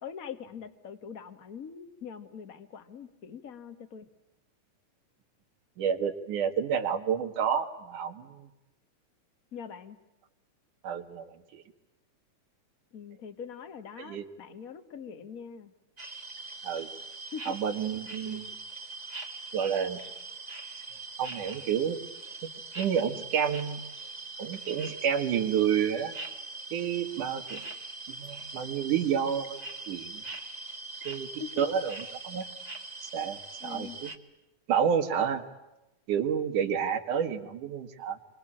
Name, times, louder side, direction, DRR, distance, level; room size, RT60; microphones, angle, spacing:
voice 1, 0.0-4.0 9.5-10.0 12.9-15.7 17.3-17.5 18.2-18.4 31.4-31.6 33.6-34.0, left 7 dB, 35° left, 10 dB, 1.6 m, -43 dB
voice 2, 5.8-8.5 10.8-11.6 14.0-14.2 16.6-16.9 17.5-18.5 19.5-20.0 21.2-22.0 22.8-23.8 24.4-26.1 26.7-27.6 28.1-29.6 29.9-30.2 31.0-31.3 31.6-32.5 33.0-34.1 34.7-35.4 36.1-38.2, right 8 dB, 85° right, 7 dB, 3.4 m, -29 dB
sound 1, 16.0-34.2, right 3 dB, 20° right, 1.2 m, -42 dB
27.0 x 24.5 x 8.8 m, 0.95 s
omnidirectional pair, 3.5 m